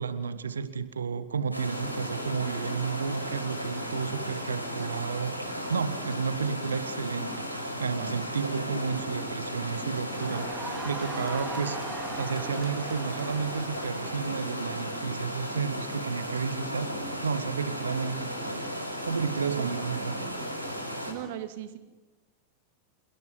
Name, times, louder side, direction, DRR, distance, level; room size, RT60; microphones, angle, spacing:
voice 1, 0.0-7.5 7.8-11.8 12.2-18.6 19.0-20.2, right 6 dB, 70° right, 13 dB, 1.7 m, -32 dB
sound 1, 1.5-21.1, equal, 90° right, 6.2 m, -35 dB
Crowd, 10.1-14.9, right 2 dB, 10° right, 3.6 m, -41 dB
voice 2, 20.0-20.4 21.1-21.8, right 12 dB, 50° right, 9 dB, 2.5 m, -39 dB
29.5 x 17.5 x 9.7 m, 1.2 s
figure-of-eight pair, 90°, 0 cm